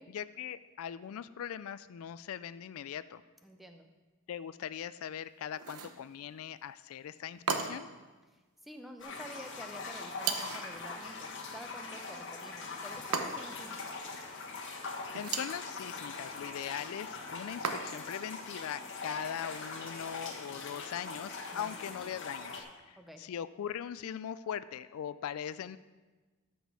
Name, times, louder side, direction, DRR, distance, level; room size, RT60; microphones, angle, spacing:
voice 1, 0.1-3.2 4.3-7.9 15.1-25.8, left 9 dB, 70° left, 15 dB, 0.3 m, -40 dB
voice 2, 3.4-3.9 8.6-13.9 21.5-21.9 23.0-23.2, equal, ahead, 5 dB, 0.6 m, -49 dB
sound 1, 5.6-6.0 7.5-8.0 10.2-10.7 13.1-13.7 15.1-15.6 17.6-18.2, right 5 dB, 85° right, 0.8 m, -35 dB
sound 2, 9.0-22.6, left 4 dB, 55° left, 1.3 m, -42 dB
13.5 x 6.1 x 4.7 m, 1.2 s
head